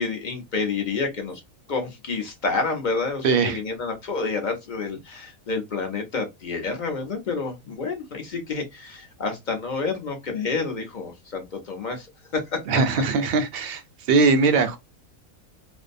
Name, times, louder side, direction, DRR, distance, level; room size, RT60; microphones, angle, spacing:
voice 1, 0.0-1.4 1.7-12.1 12.3-12.6, left 4 dB, 45° left, 0.7 m, -29 dB
voice 2, 3.2-3.6 12.7-13.8 14.1-14.8, right 4 dB, 65° right, 0.6 m, -20 dB
2.6 x 2.1 x 2.5 m
omnidirectional pair, 1.5 m